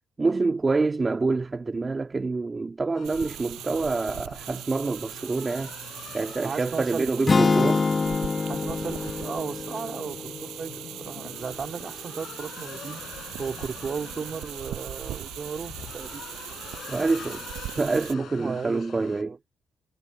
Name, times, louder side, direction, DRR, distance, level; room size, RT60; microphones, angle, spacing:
voice 1, 0.2-5.7 6.1-7.8 16.9-17.5 17.8-19.4, right 3 dB, 25° right, 2.1 m, -26 dB
sound 1, 2.9-19.2, left 10 dB, 70° left, 6.7 m, -45 dB
sound 2, 3.0-18.1, right 14 dB, 85° right, 7.3 m, -40 dB
voice 2, 6.4-7.1 8.5-16.2 18.4-19.4, right 6 dB, 45° right, 2.9 m, -35 dB
sound 3, 7.3-11.4, left 4 dB, 30° left, 1.0 m, -26 dB
cardioid pair, 90°, 0 cm